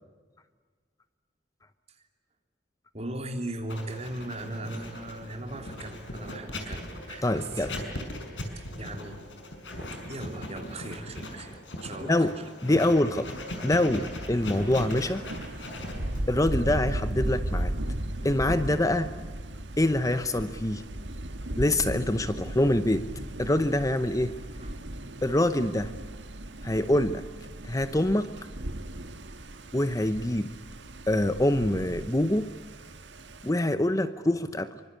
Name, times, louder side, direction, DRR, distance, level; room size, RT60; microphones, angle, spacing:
voice 1, 2.9-7.7 8.5-9.2 10.1-12.4 24.6-24.7, right 1 dB, 35° right, 5 dB, 3.2 m, -38 dB
Writing, 3.7-18.4, left 1 dB, 80° left, 6.1 m, -39 dB
voice 2, 7.2-7.7 12.1-12.4 12.6-13.4 13.6-15.2 16.3-17.7 18.2-19.1 19.8-20.8 21.6-23.1 23.4-24.3 25.2-25.9 26.6-27.2 27.6-28.3 29.7-30.5 31.1-32.5 33.4-34.8, left 1 dB, 20° left, 11 dB, 0.8 m, -25 dB
Thunder, 14.3-33.5, right 1 dB, 80° right, 1.8 m, -36 dB
26.0 x 25.0 x 8.5 m, 1.5 s
head